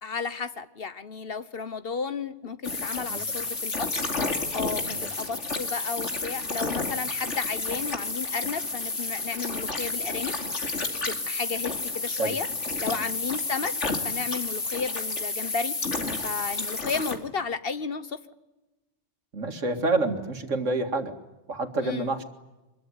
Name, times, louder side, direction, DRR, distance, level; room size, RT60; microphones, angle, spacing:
voice 1, 0.0-3.9 4.5-10.3 11.1-12.5 12.8-13.7 14.0-15.7 16.2-18.2 21.8-22.1, left 5 dB, 50° left, 13 dB, 1.3 m, -33 dB
sound 1, 2.6-17.2, left 3 dB, 70° left, 2.9 m, -31 dB
voice 2, 4.9-5.2 12.2-12.4 12.8-12.9 19.3-21.1 21.5-22.2, right 2 dB, 85° right, 7 dB, 2.5 m, -28 dB
24.5 x 22.5 x 9.7 m, 1.0 s
omnidirectional pair, 1.3 m